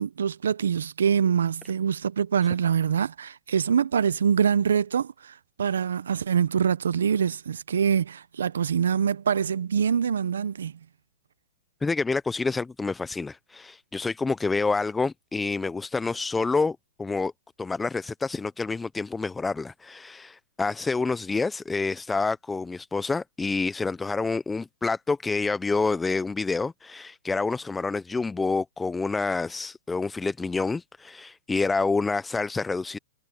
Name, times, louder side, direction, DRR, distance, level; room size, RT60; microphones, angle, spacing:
voice 1, 0.0-10.7, right 7 dB, 80° right, 0.7 m, -24 dB
voice 2, 11.8-17.3 17.6-33.0, left 4 dB, 10° left, 0.5 m, -28 dB
hypercardioid pair, 130°, 0 cm